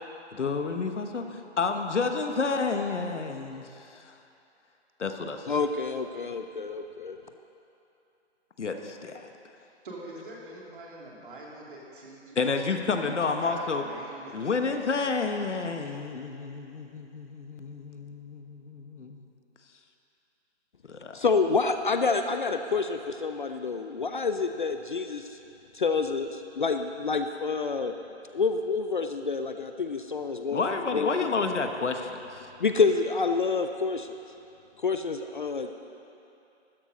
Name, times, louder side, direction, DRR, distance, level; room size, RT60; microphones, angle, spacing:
voice 1, 0.3-4.1 5.0-5.6 8.6-9.3 12.3-13.8 14.3-19.2 20.9-21.2 30.5-32.2, left 4 dB, 85° left, 5 dB, 1.2 m, -30 dB
voice 2, 5.5-7.2 21.1-25.2 25.7-27.9 28.3-30.6 30.9-31.1 31.4-31.5 32.6-34.1 34.8-35.7, left 4 dB, 45° left, 7 dB, 0.5 m, -28 dB
voice 3, 9.6-12.5 13.4-15.1, right 1 dB, 45° right, -4 dB, 2.8 m, -44 dB
13.0 x 10.0 x 5.2 m, 2.8 s
hypercardioid pair, 165°, 35 cm